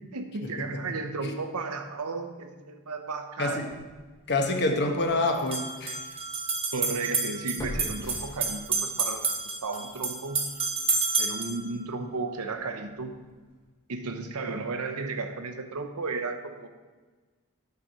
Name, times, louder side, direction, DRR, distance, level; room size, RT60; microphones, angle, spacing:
voice 1, 0.0-3.6 6.7-10.5 11.2-13.1 13.9-16.7, right 3 dB, 85° right, 7 dB, 0.9 m, -34 dB
sound 1, 3.7-3.8 5.3-11.6, right 4 dB, 25° right, 1.1 m, -30 dB
voice 2, 4.3-6.0, left 2 dB, 50° left, 4 dB, 1.0 m, -26 dB
sound 2, 5.0-5.1 7.6-9.0 9.4-9.5, equal, 15° left, 1.1 m, -38 dB
9.6 x 6.5 x 4.2 m, 1.4 s
head